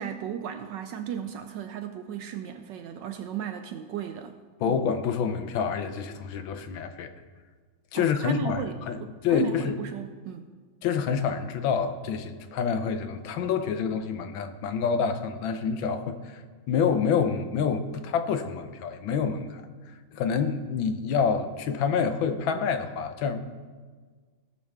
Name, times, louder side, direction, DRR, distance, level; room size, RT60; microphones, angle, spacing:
voice 1, 0.0-4.3 4.7-4.8 7.9-10.4, right 8 dB, 75° right, 7 dB, 1.1 m, -35 dB
voice 2, 4.6-7.1 7.9-9.8 10.8-23.4, left 6 dB, 75° left, 9 dB, 1.5 m, -27 dB
17.0 x 7.3 x 3.5 m, 1.5 s
omnidirectional pair, 2.2 m